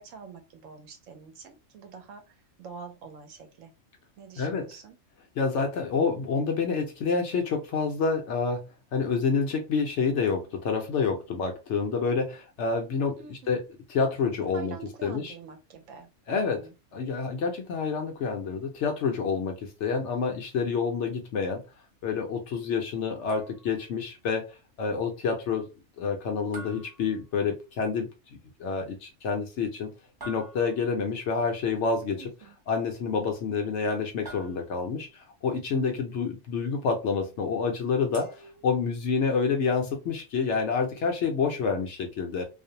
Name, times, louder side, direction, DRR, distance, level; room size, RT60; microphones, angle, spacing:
voice 1, 0.0-3.7 4.2-5.0 13.2-13.6 14.5-16.1 16.3-16.7 32.2-32.5, right 5 dB, 70° right, 0.9 m, -46 dB
voice 2, 4.4-4.7 5.4-8.6 8.9-13.6 13.9-14.8 15.0-15.3 16.3-16.7 16.9-21.6 22.0-25.7 26.0-28.1 28.6-29.9 30.2-32.3 32.7-38.3 38.6-42.4, left 5 dB, 65° left, 0.8 m, -28 dB
sound 1, 23.3-23.9 26.5-27.8 30.2-31.1 34.2-35.1 38.1-39.2, right 2 dB, 20° right, 0.6 m, -47 dB
2.5 x 2.0 x 2.6 m
omnidirectional pair, 1.5 m